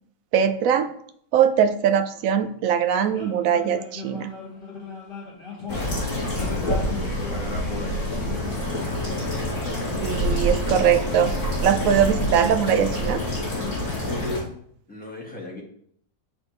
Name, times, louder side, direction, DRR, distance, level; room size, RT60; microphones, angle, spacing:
voice 1, 0.3-0.9 1.3-4.3 10.0-11.4 11.6-13.2, right 8 dB, 70° right, 10 dB, 0.8 m, -21 dB
sound 1, 3.1-10.1, left 4 dB, 30° left, 1.8 m, -39 dB
sound 2, 5.7-14.4, left 1 dB, 50° left, 3.0 m, -27 dB
voice 2, 6.4-8.6 14.9-15.6, left 1 dB, 5° left, -3 dB, 1.3 m, -38 dB
9.5 x 3.4 x 3.1 m, 0.66 s
omnidirectional pair, 1.8 m